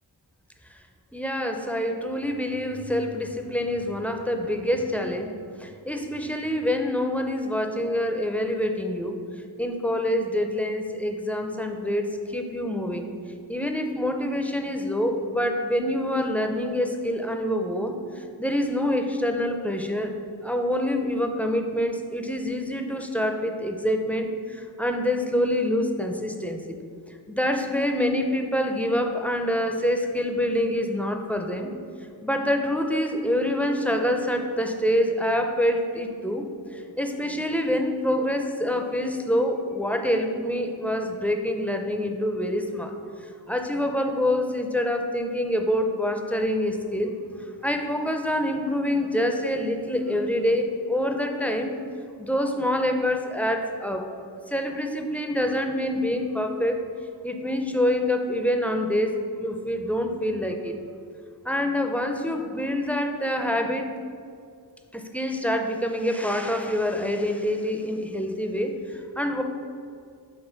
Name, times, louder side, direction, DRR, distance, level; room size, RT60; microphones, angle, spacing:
voice 1, 1.1-5.3 5.6-9.2 9.6-13.1 13.5-20.1 20.4-26.8 27.3-31.7 32.2-51.7 52.2-54.1 54.5-56.8 57.2-59.1 59.4-60.8 61.4-63.9 64.9-69.4, left 1 dB, 5° left, 4 dB, 0.4 m, -26 dB
6.1 x 4.1 x 3.9 m, 2.3 s
wide cardioid pair, 70°, 42 cm